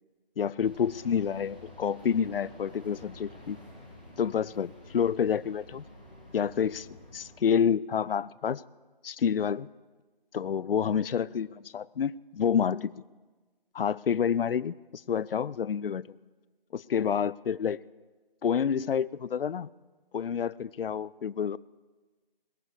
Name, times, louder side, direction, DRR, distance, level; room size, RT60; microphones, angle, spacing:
voice 1, 0.4-3.6 4.2-5.8 6.3-6.9 7.1-8.6 9.0-9.7 10.3-12.9 13.7-16.2 16.7-17.8 18.4-19.7 20.1-21.6, left 7 dB, 70° left, 21 dB, 0.4 m, -28 dB
sound 1, 0.6-7.4, left 1 dB, 10° right, 0.7 m, -49 dB
22.0 x 9.6 x 5.0 m, 1.3 s
figure-of-eight pair, 170°, 29 cm